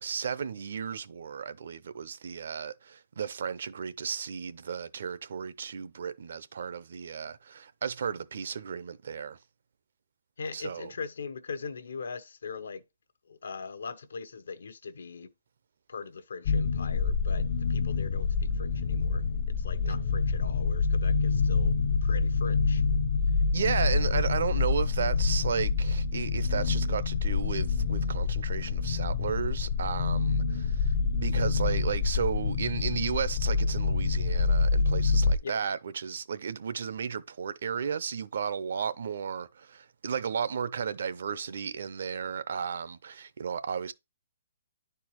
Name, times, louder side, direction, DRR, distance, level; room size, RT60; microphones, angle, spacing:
voice 1, 0.0-9.4 10.5-10.9 23.5-43.9, right 7 dB, 55° right, 0.5 m, -34 dB
voice 2, 10.4-12.8 13.3-15.3 15.9-22.8 35.4-35.5, left 5 dB, 80° left, 0.9 m, -41 dB
sound 1, 16.5-35.4, left 4 dB, 40° left, 0.6 m, -27 dB
10.5 x 4.4 x 3.1 m
hypercardioid pair, 175°, 0 cm